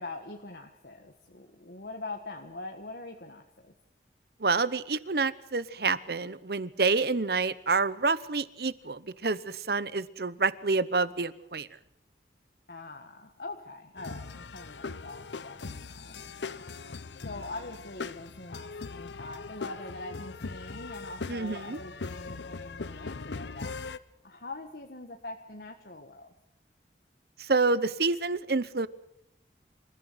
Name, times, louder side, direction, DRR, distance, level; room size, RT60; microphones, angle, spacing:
voice 1, 0.0-3.7 12.7-16.6 17.2-23.7 24.2-26.3, left 2 dB, 65° left, 3 dB, 1.6 m, -43 dB
voice 2, 4.4-11.7 21.3-21.8 27.4-28.9, right 4 dB, 65° right, 17 dB, 0.9 m, -28 dB
sound 1, 14.0-24.0, left 4 dB, 90° left, 0.8 m, -40 dB
27.0 x 15.0 x 8.0 m, 0.79 s
head